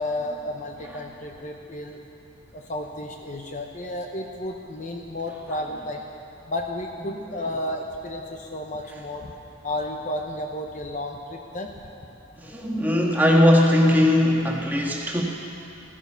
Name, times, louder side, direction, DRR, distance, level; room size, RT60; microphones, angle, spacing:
voice 1, 0.0-2.0 2.5-6.0 6.5-9.3 9.6-12.4, left 1 dB, 35° left, 2 dB, 0.8 m, -32 dB
voice 2, 12.4-15.2, left 1 dB, 10° right, -2 dB, 1.6 m, -19 dB
15.0 x 14.5 x 5.7 m, 2.8 s
head